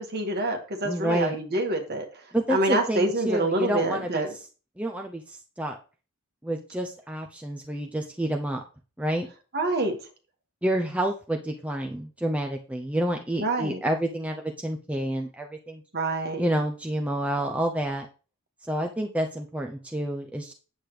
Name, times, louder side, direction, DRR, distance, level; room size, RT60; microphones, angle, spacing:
voice 1, 0.0-2.2 2.5-4.4 9.5-10.0 13.4-13.8 15.9-16.4, right 2 dB, 50° right, 3 dB, 1.8 m, -26 dB
voice 2, 0.8-1.4 2.3-4.2 4.8-5.2 5.6-5.7 6.4-8.6 9.0-9.3 10.6-15.8 16.4-18.1 18.7-20.5, right 1 dB, 5° right, 2 dB, 0.6 m, -28 dB
8.6 x 7.8 x 3.2 m, 0.36 s
head